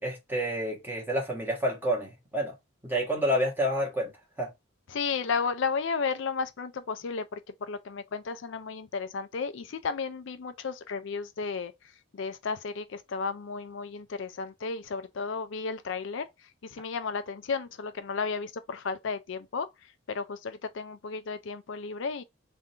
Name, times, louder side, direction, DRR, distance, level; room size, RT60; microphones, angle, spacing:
voice 1, 0.0-2.5 2.8-4.1 4.4-4.5, equal, 10° right, 1.4 m, -29 dB
voice 2, 4.9-7.4 7.7-11.7 12.2-16.2 16.7-19.7 20.1-22.2, left 5 dB, 65° left, 0.4 m, -33 dB
3.7 x 2.6 x 4.3 m
head